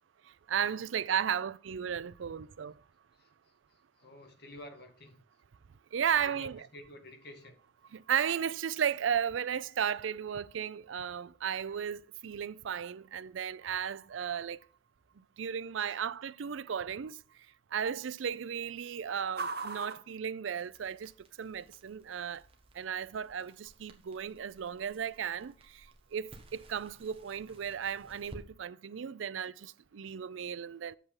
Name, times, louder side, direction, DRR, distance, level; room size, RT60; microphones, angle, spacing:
voice 1, 0.5-2.7 5.9-6.6 7.9-14.6 15.4-17.1 17.7-21.1 21.4-22.4 22.8-25.5 26.1-31.0, right 8 dB, 85° right, 0.4 m, -34 dB
voice 2, 3.1-5.2 6.1-7.6 15.9-16.0, left 1 dB, 55° left, 1.9 m, -51 dB
sound 1, 6.4-21.2, right 4 dB, 55° right, 1.0 m, -50 dB
Crackle, 20.6-28.4, right 1 dB, 30° right, 1.4 m, -57 dB
8.3 x 7.2 x 3.8 m
head